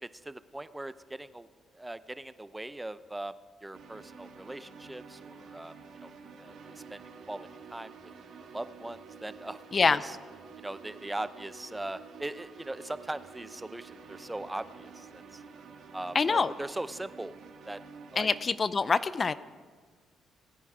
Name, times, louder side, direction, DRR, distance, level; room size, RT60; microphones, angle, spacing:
voice 1, 0.0-1.5 1.8-3.3 3.6-5.7 6.0-6.1 6.4-6.6 6.9-7.0 7.3-7.9 8.5-10.2 10.6-15.4 15.9-17.4 17.7-17.8 18.1-18.3, right 1 dB, 10° right, 14 dB, 0.6 m, -40 dB
sound 1, 3.7-18.5, right 5 dB, 75° right, 2.3 m, -50 dB
voice 2, 16.1-16.5 18.2-19.3, left 4 dB, 35° left, 15 dB, 0.5 m, -25 dB
20.0 x 9.8 x 4.9 m, 1.5 s
cardioid pair, 90°, 0 cm